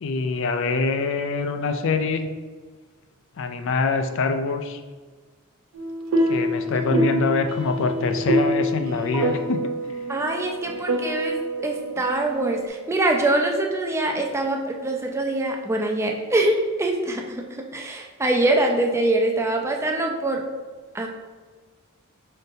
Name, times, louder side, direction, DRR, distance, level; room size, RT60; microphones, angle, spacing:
voice 1, 0.0-2.3 3.4-4.8 6.2-9.7, left 3 dB, 60° left, 7 dB, 0.4 m, -24 dB
sound 1, 5.7-12.7, equal, 75° right, 0.5 m, -26 dB
voice 2, 10.1-20.4 20.9-21.1, right 2 dB, 15° right, 2 dB, 0.4 m, -24 dB
5.2 x 3.8 x 2.7 m, 1.4 s
head